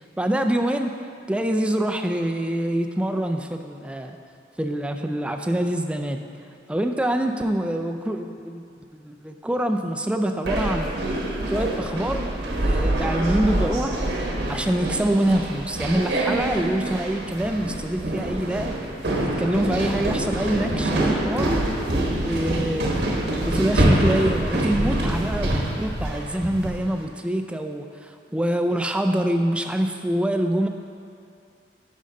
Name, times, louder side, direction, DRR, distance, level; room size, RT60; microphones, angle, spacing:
voice 1, 0.2-0.9 1.3-4.2 4.6-6.2 6.7-8.6 8.9-10.9 11.5-12.3 12.6-14.0 14.5-18.7 19.2-21.5 22.2-23.0 23.4-30.7, right 1 dB, 5° right, 5 dB, 0.3 m, -25 dB
sound 1, 10.5-26.9, right 1 dB, 75° right, 1.1 m, -25 dB
10.5 x 5.3 x 3.8 m, 2.5 s
head